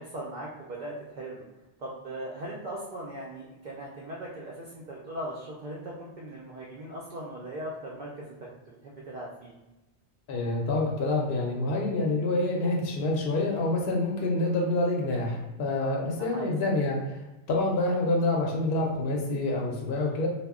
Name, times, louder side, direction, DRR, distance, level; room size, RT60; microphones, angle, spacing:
voice 1, 0.0-1.4 1.8-8.3 8.7-9.5 15.8-16.5, right 1 dB, 60° right, -4 dB, 0.5 m, -39 dB
voice 2, 10.3-17.2 17.5-20.3, left 2 dB, 60° left, -1 dB, 0.7 m, -27 dB
2.1 x 2.0 x 3.5 m, 1.0 s
omnidirectional pair, 1.2 m